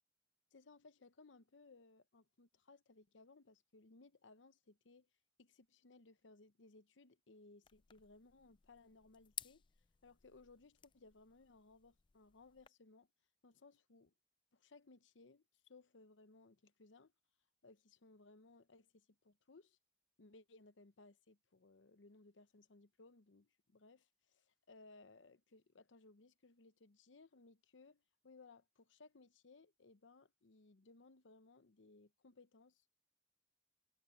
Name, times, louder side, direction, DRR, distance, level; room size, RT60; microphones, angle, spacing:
voice 1, 0.5-5.1 5.4-9.6 10.0-13.1 13.4-14.1 14.5-17.1 17.6-19.8 20.2-32.9, left 3 dB, 80° left, 0.8 m, -63 dB
sound 1, 7.6-12.7, left 10 dB, 25° left, 0.4 m, -56 dB
head